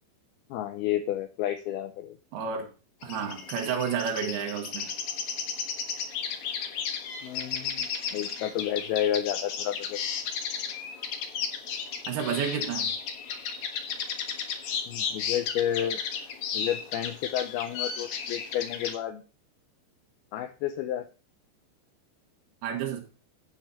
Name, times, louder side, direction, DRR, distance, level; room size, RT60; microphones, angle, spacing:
voice 1, 0.5-2.2 7.2-10.0 14.9-16.0 16.5-19.2 20.3-21.0, left 11 dB, 80° left, 7 dB, 2.3 m, -31 dB
voice 2, 2.3-2.7 3.0-4.9 12.1-12.9 22.6-23.0, right 7 dB, 65° right, 2 dB, 3.3 m, -30 dB
sound 1, 3.0-19.0, left 6 dB, 60° left, 2.8 m, -34 dB
9.6 x 8.6 x 4.3 m, 0.35 s
omnidirectional pair, 5.1 m